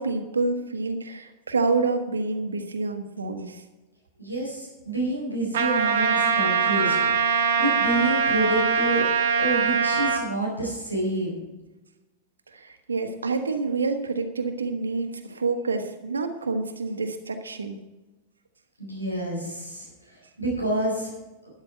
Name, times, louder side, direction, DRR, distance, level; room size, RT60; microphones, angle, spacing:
voice 1, 0.0-3.6 12.5-17.8, right 3 dB, 75° right, 6 dB, 1.3 m, -28 dB
voice 2, 4.2-7.0 7.2-9.0 9.4-11.5 18.8-21.1, right 1 dB, 90° left, -2 dB, 4.4 m, -28 dB
Trumpet, 5.5-10.2, right 5 dB, 60° right, 1.4 m, -22 dB
12.5 x 10.5 x 4.4 m, 1.1 s
figure-of-eight pair, 90°, 0 cm